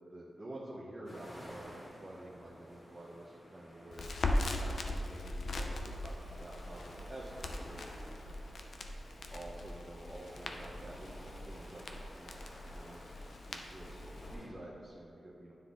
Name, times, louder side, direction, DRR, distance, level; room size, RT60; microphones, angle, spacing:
voice 1, 0.1-4.1 4.6-8.4 9.3-12.4 12.7-13.0 13.4-15.5, right 1 dB, 25° right, -5 dB, 0.8 m, -49 dB
sound 1, 1.1-14.5, equal, 15° left, 1.3 m, -54 dB
Crackle, 3.9-14.3, left 1 dB, 70° left, 0.5 m, -40 dB
9.6 x 3.8 x 3.7 m, 2.6 s
wide cardioid pair, 105°, 0 cm